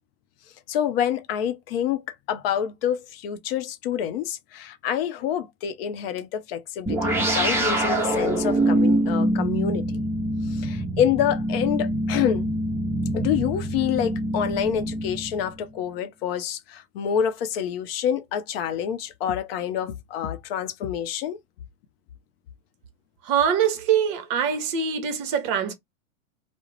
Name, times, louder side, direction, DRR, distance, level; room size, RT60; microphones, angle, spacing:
voice 1, 0.7-2.0 2.3-10.0 10.5-12.4 13.1-21.4, left 9 dB, 45° left, 0.5 m, -27 dB
sound 1, 6.9-15.7, right 1 dB, 5° right, 0.7 m, -25 dB
voice 2, 23.3-25.7, right 8 dB, 40° right, 0.7 m, -23 dB
2.3 x 2.0 x 3.1 m
hypercardioid pair, 110°, 42 cm